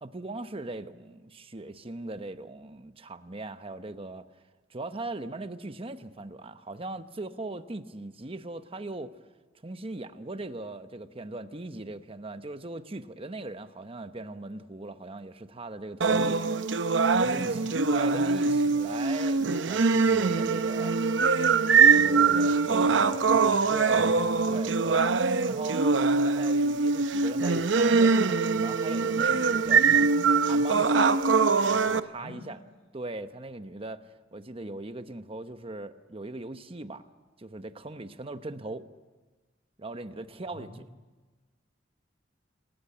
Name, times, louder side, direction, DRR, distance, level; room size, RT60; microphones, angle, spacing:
voice 1, 0.0-4.3 4.7-9.1 9.6-16.5 17.2-19.4 19.7-20.9 21.9-22.5 23.7-24.1 24.5-25.1 25.4-30.1 30.5-31.2 31.7-32.6 32.9-34.1 34.3-37.0 37.4-38.9 39.8-40.9, right 2 dB, 30° right, 0.9 m, -39 dB
sound 1, 16.0-32.0, right 4 dB, 80° right, 0.8 m, -23 dB
voice 2, 17.2-17.8 22.2-23.7 23.9-24.1 24.5-24.6 32.2-32.4 40.5-40.8, left 1 dB, 50° left, 2.6 m, -46 dB
27.5 x 14.5 x 9.1 m
head